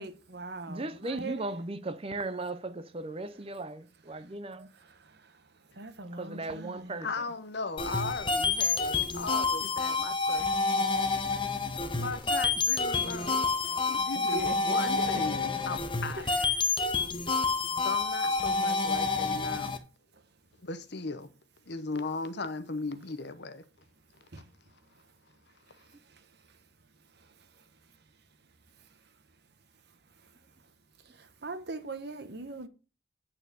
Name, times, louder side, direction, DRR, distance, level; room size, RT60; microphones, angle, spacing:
voice 1, 0.0-1.6 4.1-4.3 4.7-7.1 11.2-11.4 13.0-13.1 14.1-15.5 16.2-16.3 16.7-16.9 17.2-17.7 20.1-20.2 24.3-24.5 24.9-25.1 25.7-26.7 27.1-28.0 28.8-29.1 30.1-30.3 30.6-30.7 31.0-32.7, right 2 dB, 55° right, 1.1 m, -43 dB
voice 2, 0.7-4.7 6.2-7.1, right 2 dB, 30° right, 0.7 m, -37 dB
voice 3, 7.0-13.5 13.9-16.2 16.9-17.1 17.8-19.8 20.6-21.3 21.7-23.6, left 3 dB, 60° left, 0.9 m, -37 dB
sound 1, 7.8-19.8, left 4 dB, 25° left, 0.8 m, -28 dB
8.8 x 4.4 x 6.7 m
head